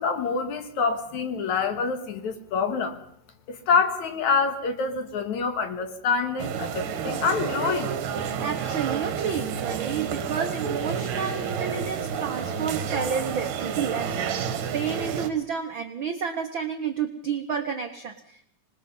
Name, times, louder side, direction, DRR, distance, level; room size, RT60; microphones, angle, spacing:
voice 1, 0.0-3.0 3.5-8.0, left 5 dB, 60° left, 2.8 m, -26 dB
sound 1, 6.4-15.3, right 7 dB, 70° right, 2.9 m, -30 dB
voice 2, 8.4-18.5, right 7 dB, 85° right, 1.0 m, -31 dB
26.0 x 20.5 x 5.5 m
omnidirectional pair, 4.1 m